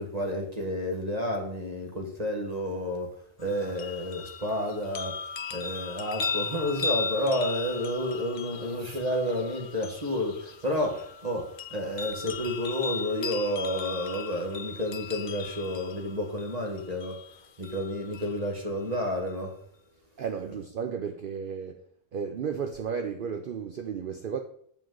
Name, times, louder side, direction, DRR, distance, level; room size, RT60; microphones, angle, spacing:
voice 1, 0.0-3.1 3.4-5.1 5.5-17.2 17.6-19.5, left 1 dB, 35° right, 1.5 m, -30 dB
sound 1, 3.4-18.4 18.9-19.0, left 5 dB, 45° left, 0.6 m, -37 dB
voice 2, 20.2-21.8 22.1-24.4, right 6 dB, 55° right, 0.7 m, -33 dB
7.8 x 7.2 x 3.9 m
omnidirectional pair, 1.3 m